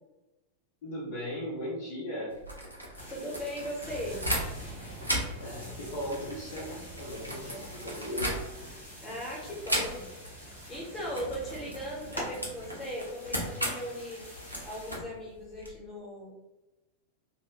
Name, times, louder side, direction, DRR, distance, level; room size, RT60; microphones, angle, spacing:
voice 1, 0.8-2.3 5.4-8.5, equal, 50° left, -4 dB, 0.6 m, -37 dB
sound 1, 2.3-4.7 5.0-8.8 9.6-10.3 10.6-10.8 11.1-15.7, equal, 90° right, 0.6 m, -36 dB
sound 2, 2.9-14.9, equal, 80° left, 0.9 m, -46 dB
voice 2, 3.1-4.2 9.0-10.1 10.3-14.2 14.6-16.3, equal, 20° left, -4 dB, 1.0 m, -38 dB
sound 3, 3.8-12.5, right 3 dB, 25° right, 0.5 m, -49 dB
2.6 x 2.0 x 2.9 m, 1.0 s
figure-of-eight pair, 90°, 0 cm